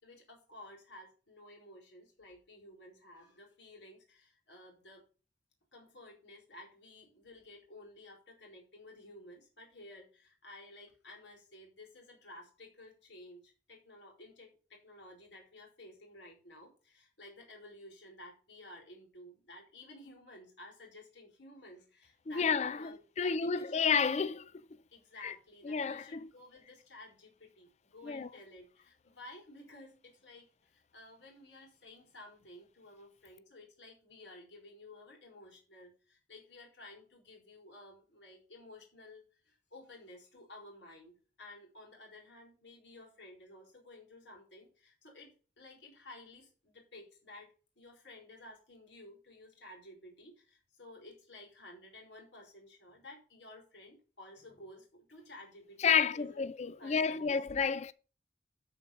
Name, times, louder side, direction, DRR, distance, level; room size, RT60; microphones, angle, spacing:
voice 1, 0.0-5.1 5.7-23.8 24.9-56.5 56.8-57.4, left 1 dB, 80° left, 4.4 m, -54 dB
voice 2, 22.3-24.5 25.2-25.3 25.6-26.3 28.0-28.3 55.8-57.9, left 6 dB, 40° left, 0.4 m, -31 dB
13.5 x 4.5 x 5.9 m
head